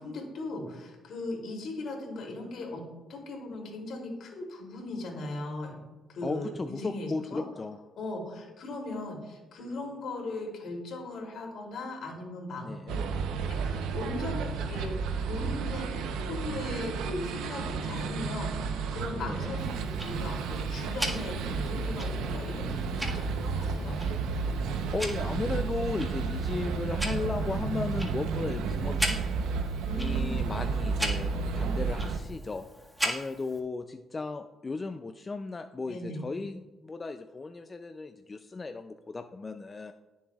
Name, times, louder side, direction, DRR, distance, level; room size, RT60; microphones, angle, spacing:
voice 1, 0.0-2.8 3.1-5.8 6.1-7.4 8.0-12.7 13.5-14.9 15.2-24.0 29.8-30.5 35.8-36.2, left 2 dB, 70° left, 0 dB, 2.9 m, -38 dB
voice 2, 6.2-7.8 12.6-13.0 19.2-19.5 24.6-29.2 29.9-32.7 33.0-39.9, left 3 dB, 30° left, 8 dB, 0.4 m, -35 dB
sound 1, 12.9-32.2, right 5 dB, 90° right, 0.8 m, -32 dB
Tick-tock, 19.6-33.6, equal, ahead, 1.7 m, -39 dB
21.0 x 7.2 x 2.4 m, 1.2 s
cardioid pair, 90°, 0 cm